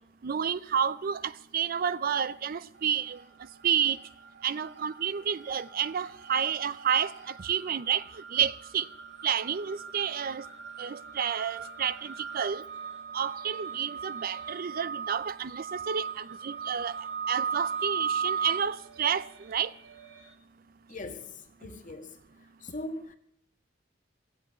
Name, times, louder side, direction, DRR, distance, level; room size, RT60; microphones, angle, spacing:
voice 1, 0.2-3.2 3.6-4.0 4.4-7.1 7.4-8.0 8.3-8.8 9.2-10.4 10.8-12.6 13.1-16.9 17.3-19.7, right 8 dB, 50° right, 0.4 m, -30 dB
sound 1, 2.8-3.4 3.7-20.3, right 6 dB, 65° right, 1.9 m, -38 dB
voice 2, 20.9-22.2 22.6-23.1, left 2 dB, 45° left, 1.4 m, -40 dB
15.0 x 8.0 x 8.1 m
head